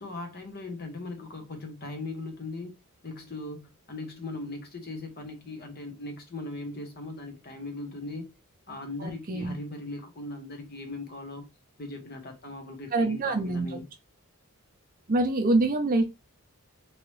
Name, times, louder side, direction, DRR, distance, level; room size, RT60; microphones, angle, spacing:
voice 1, 0.0-2.7 3.0-8.3 8.7-11.5 11.8-13.9, left 2 dB, 45° left, 0.9 m, -39 dB
voice 2, 9.0-9.6 12.9-13.8 15.1-16.1, right 2 dB, 40° right, 0.5 m, -25 dB
3.1 x 2.8 x 3.1 m
head